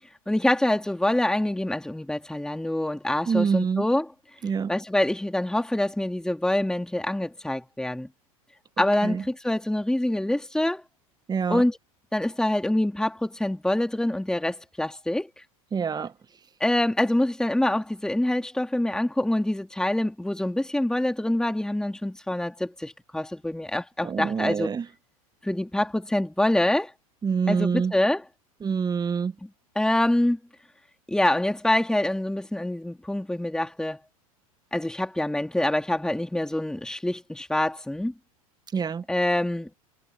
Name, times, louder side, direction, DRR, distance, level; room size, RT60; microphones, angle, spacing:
voice 1, 0.3-4.1 4.7-8.1 8.8-10.8 11.5-11.8 12.1-15.4 16.6-24.7 25.4-26.9 27.5-28.2 29.4-29.5 29.7-30.4 31.1-34.0 34.7-38.1 39.1-39.7, left 1 dB, 5° left, 2.9 m, -25 dB
voice 2, 3.3-3.9 4.4-4.7 8.8-9.2 11.3-11.6 15.7-16.1 24.0-24.9 27.2-27.9 28.6-29.3 38.7-39.0, right 6 dB, 20° right, 1.5 m, -26 dB
hypercardioid pair, 85°, 19 cm